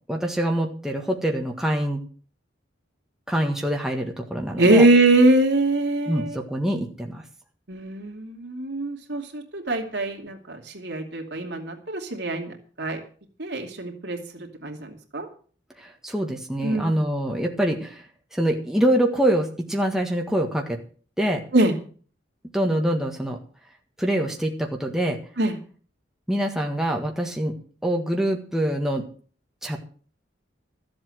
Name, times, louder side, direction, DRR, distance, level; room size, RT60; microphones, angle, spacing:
voice 1, 0.1-2.0 3.3-4.9 6.1-7.2 15.8-18.0 18.3-20.8 21.2-21.4 22.5-23.4 24.0-25.2 26.3-27.5 27.8-29.0 29.6-29.8, right 1 dB, 5° right, 1 dB, 1.6 m, -25 dB
voice 2, 4.6-6.4 7.7-13.0 13.4-15.3 16.6-17.0 21.5-21.7 25.4-25.6, right 2 dB, 65° right, 2 dB, 2.7 m, -23 dB
13.5 x 7.9 x 7.8 m, 0.43 s
head